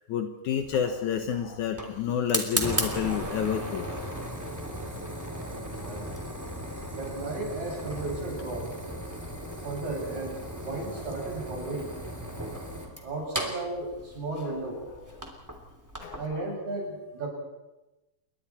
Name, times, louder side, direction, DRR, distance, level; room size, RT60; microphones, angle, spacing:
voice 1, 0.1-3.8 5.8-5.9 16.0-16.4, left 8 dB, 75° left, 5 dB, 1.7 m, -29 dB
Fire, 0.6-16.3, right 1 dB, 5° right, 1.9 m, -36 dB
voice 2, 5.8-6.1 6.9-9.3 9.6-12.0 13.0-14.8 16.2-17.3, right 2 dB, 40° right, -1 dB, 8.5 m, -35 dB
28.5 x 23.0 x 4.4 m, 1.0 s
omnidirectional pair, 5.0 m